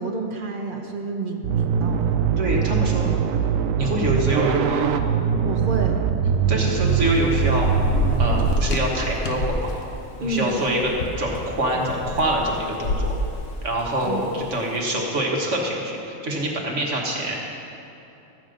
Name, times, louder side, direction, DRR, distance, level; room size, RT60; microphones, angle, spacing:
voice 1, 0.0-2.1 5.4-6.0 10.2-10.5 14.0-14.4, right 3 dB, 45° right, 3 dB, 1.0 m, -29 dB
sound 1, 1.4-8.5, right 7 dB, 80° right, 1.0 m, -22 dB
voice 2, 2.4-3.1 3.8-5.0 6.5-7.7 8.2-9.7 10.2-13.1 13.6-17.4, right 1 dB, 60° right, -1 dB, 1.8 m, -25 dB
Thunder / Rain, 6.9-14.5, left 1 dB, 60° left, 1.1 m, -28 dB
13.5 x 8.3 x 5.1 m, 2.9 s
omnidirectional pair, 1.4 m